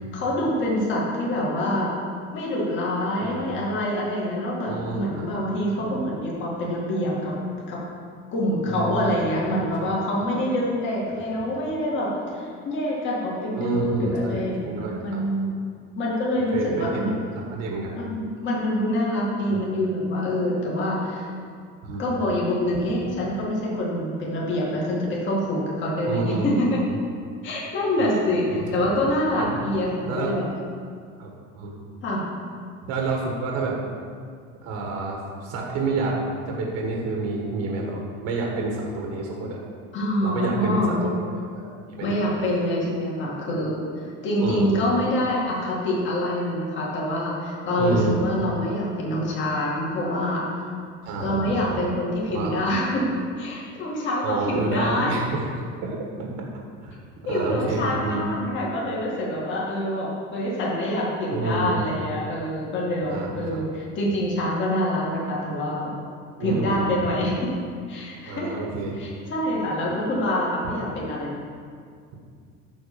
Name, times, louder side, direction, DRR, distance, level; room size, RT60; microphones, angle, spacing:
voice 1, 0.0-1.9 2.3-7.3 7.7-7.8 8.3-15.5 16.0-17.2 18.0-21.3 22.0-26.8 27.4-30.5 32.0-32.2 39.9-41.0 42.0-43.8 44.2-50.4 51.2-53.1 53.4-55.2 57.3-66.0 66.4-67.5 67.9-68.5 68.9-71.4, left 1 dB, 35° left, -5 dB, 2.3 m, -26 dB
voice 2, 3.2-3.5 4.7-5.3 8.7-9.9 11.1-11.4 13.5-15.2 16.3-18.0 19.5-19.6 21.8-22.0 26.1-26.5 28.0-28.1 28.5-28.9 29.4-29.5 30.0-30.3 31.2-31.8 32.9-33.8 34.6-36.2 36.5-39.6 40.2-41.1 41.5-41.7 42.0-42.2 44.4-44.7 47.8-48.2 51.0-51.8 52.3-52.5 54.2-56.4 56.8-57.0 57.3-58.2 61.3-61.8 63.0-63.6 66.4-67.0 68.3-69.0, right 3 dB, 45° right, -1 dB, 1.4 m, -29 dB
10.5 x 4.3 x 6.9 m, 2.1 s
cardioid pair, 170°, 35 cm